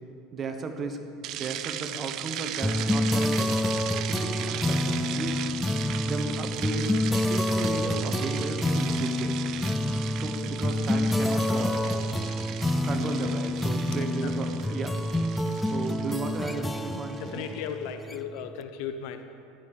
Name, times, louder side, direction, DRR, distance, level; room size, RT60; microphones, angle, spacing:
voice 1, 0.3-1.0 1.3-3.6 4.0-5.4 6.0-9.4 10.1-11.8 12.7-15.0 15.6-17.4, right 3 dB, 25° right, 6 dB, 1.1 m, -34 dB
sound 1, 1.2-17.5, right 12 dB, 45° right, 0.6 m, -38 dB
sound 2, 2.6-18.5, left 1 dB, 10° left, 0.3 m, -28 dB
voice 2, 14.0-14.3 17.2-19.2, left 8 dB, 65° left, 8 dB, 0.7 m, -36 dB
14.5 x 12.0 x 4.9 m, 2.5 s
supercardioid pair, 140°, 0 cm